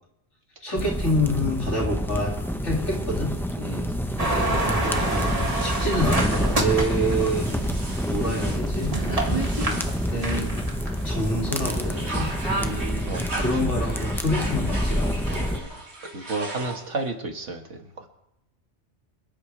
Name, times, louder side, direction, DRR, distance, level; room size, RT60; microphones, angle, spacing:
voice 1, 0.6-2.3 2.6-3.3 4.6-5.3 5.6-7.5 8.0-9.0 10.0-10.5 11.0-12.3 13.4-15.7, equal, 80° left, -3 dB, 3.1 m, -27 dB
sound 1, 0.8-15.6, equal, ahead, 0.7 m, -27 dB
voice 2, 3.6-4.0 12.6-13.4 15.1-15.7 16.1-18.0, right 3 dB, 85° right, 3 dB, 2.1 m, -33 dB
sound 2, 4.2-12.8, right 2 dB, 30° right, 2.0 m, -30 dB
sound 3, 4.9-11.1 11.5-17.1, right 2 dB, 65° right, 2.8 m, -38 dB
26.0 x 11.0 x 3.4 m, 0.84 s
omnidirectional pair, 1.2 m